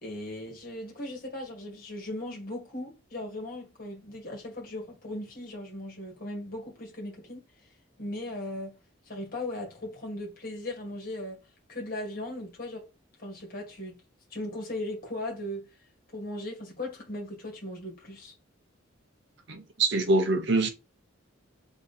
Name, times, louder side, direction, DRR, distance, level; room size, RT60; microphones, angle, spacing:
voice 1, 0.0-7.4 8.0-8.8 9.1-11.4 11.7-12.9 13.2-14.0 14.3-15.7 16.1-18.3, left 1 dB, 45° left, 1.8 m, -38 dB
voice 2, 19.5-20.7, right 2 dB, 60° right, 0.9 m, -24 dB
3.7 x 3.1 x 4.1 m
head